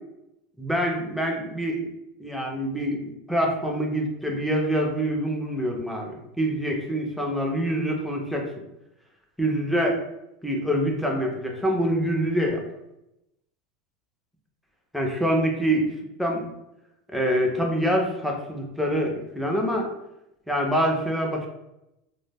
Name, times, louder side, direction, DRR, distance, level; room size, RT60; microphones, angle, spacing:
voice 1, 0.6-1.8 2.2-8.5 9.4-10.0 10.4-12.6 14.9-15.9 16.2-16.5 17.1-19.9 20.5-21.5, equal, ahead, 0 dB, 0.3 m, -25 dB
2.2 x 2.0 x 3.3 m, 0.87 s
supercardioid pair, 170°, 2 cm